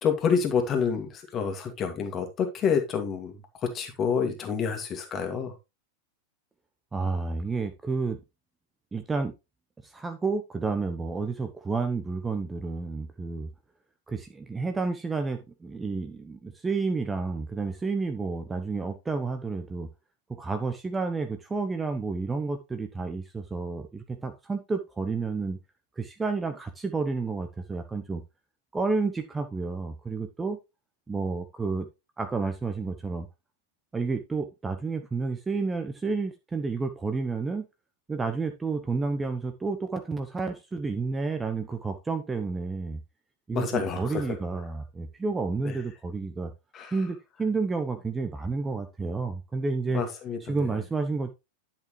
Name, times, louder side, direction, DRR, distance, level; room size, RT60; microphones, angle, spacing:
voice 1, 0.0-3.4 3.7-5.5 43.5-44.3 45.6-45.7 46.7-46.9 49.9-50.7, left 6 dB, 30° left, 2.1 m, -28 dB
voice 2, 6.9-8.2 8.9-9.3 9.8-13.5 14.1-19.9 20.3-25.6 26.0-28.2 28.7-30.6 31.1-31.9 32.2-33.3 33.9-37.7 38.1-43.0 43.5-46.5 46.9-50.0 50.5-51.3, right 4 dB, 15° right, 0.8 m, -30 dB
10.5 x 5.9 x 3.2 m
figure-of-eight pair, 90°, 0 cm